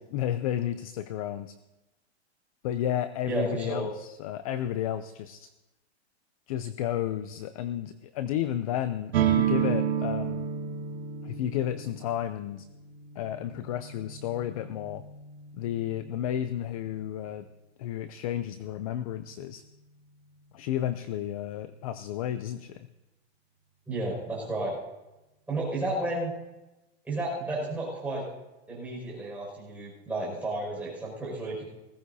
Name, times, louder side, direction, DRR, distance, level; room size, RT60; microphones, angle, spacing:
voice 1, 0.1-1.5 2.6-5.5 6.5-10.4 11.2-12.7 13.2-15.0 15.5-17.5 17.8-19.6 20.5-22.9, left 11 dB, 35° left, 12 dB, 0.4 m, -32 dB
voice 2, 3.2-3.9 23.9-24.7 25.5-26.3 27.0-28.2 28.7-31.7, right 2 dB, 5° right, -5 dB, 5.9 m, -32 dB
sound 1, 9.1-16.7, right 8 dB, 65° right, 2.0 m, -32 dB
20.0 x 16.0 x 2.8 m, 1.0 s
supercardioid pair, 160°, 33 cm